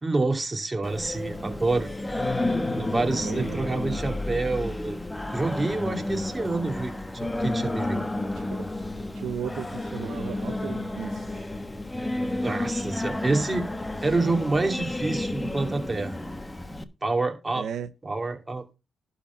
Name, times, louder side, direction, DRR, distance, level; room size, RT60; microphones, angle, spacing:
voice 1, 0.0-1.9 2.3-5.0 5.3-8.0 12.4-13.7 14.0-16.2 17.0-17.7 18.0-18.6, right 3 dB, 25° right, 2.7 m, -27 dB
Singing, 0.8-16.8, left 2 dB, 15° left, 1.3 m, -31 dB
voice 2, 3.1-3.6 8.3-8.7 9.1-11.5 17.5-17.9, right 8 dB, 70° right, 0.8 m, -35 dB
11.5 x 4.2 x 7.1 m
supercardioid pair, 60°, 0 cm